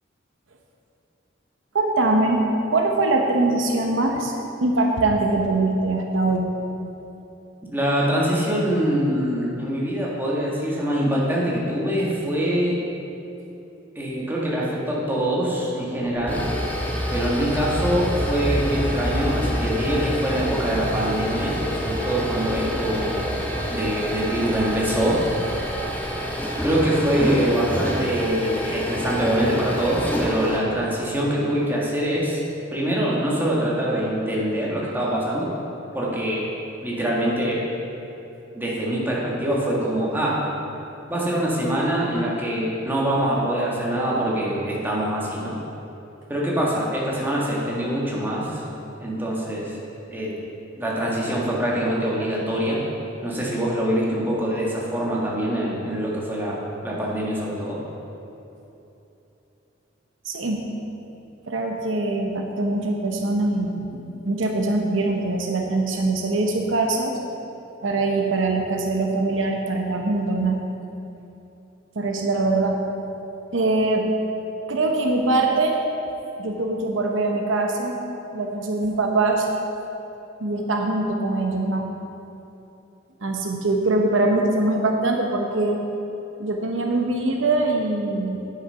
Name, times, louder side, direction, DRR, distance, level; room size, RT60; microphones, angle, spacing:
voice 1, 1.7-6.5 60.2-60.6 61.5-67.1 67.8-70.6 72.0-72.8 73.5-74.1 74.7-75.8 76.4-78.0 78.3-79.5 80.4-81.9 83.2-85.8 86.4-88.4, right 2 dB, 75° right, 2 dB, 0.9 m, -22 dB
voice 2, 7.7-12.8 14.0-16.5 17.1-25.2 26.6-32.4 32.7-35.5 35.9-36.5 36.8-37.6 38.5-40.4 41.1-45.5 46.3-48.6 49.0-49.8 50.1-50.3 50.8-52.8 53.2-57.8, right 1 dB, 10° right, -5 dB, 1.7 m, -24 dB
sound 1, 16.1-30.6, equal, 10° left, 1.2 m, -27 dB
9.4 x 6.5 x 5.6 m, 3.0 s
head